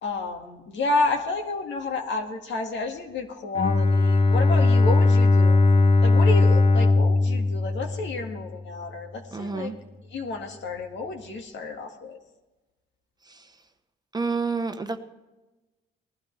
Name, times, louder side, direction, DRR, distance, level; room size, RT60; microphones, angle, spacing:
voice 1, 0.0-5.6 6.0-9.7 10.1-12.2, left 3 dB, 65° left, 3 dB, 2.0 m, -30 dB
Bowed string instrument, 3.5-8.5, left 3 dB, 25° left, 0.8 m, -19 dB
voice 2, 9.3-9.7 14.1-15.0, right 4 dB, 20° right, 6 dB, 1.0 m, -28 dB
19.5 x 12.0 x 3.4 m, 1.1 s
cardioid pair, 90°, 20 cm